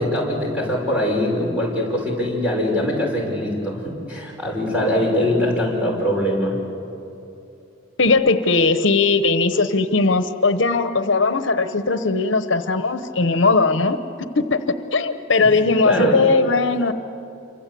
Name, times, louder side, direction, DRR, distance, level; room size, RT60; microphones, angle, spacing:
voice 1, 0.0-6.6 15.4-15.5 15.8-16.2, equal, 5° right, -2 dB, 6.1 m, -22 dB
voice 2, 8.0-14.0 14.4-14.6 14.9-16.9, left 3 dB, 70° left, 10 dB, 1.0 m, -19 dB
27.5 x 25.0 x 8.5 m, 2.8 s
head